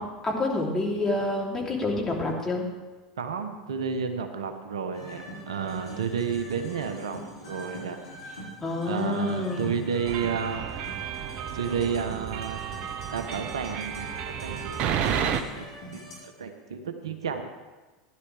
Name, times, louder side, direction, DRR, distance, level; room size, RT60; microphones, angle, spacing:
voice 1, 0.0-2.6 8.6-9.8, left 2 dB, 20° left, -3 dB, 3.3 m, -28 dB
voice 2, 3.2-8.0 8.8-10.7 11.5-12.6 13.1-15.7 15.9-17.4, right 6 dB, 75° right, 7 dB, 1.0 m, -31 dB
sound 1, 4.9-16.1, equal, 75° left, 4.4 m, -44 dB
sound 2, 10.1-15.4, right 8 dB, 45° right, 0.9 m, -32 dB
15.5 x 11.0 x 3.4 m, 1.2 s
hypercardioid pair, 85°, 3 cm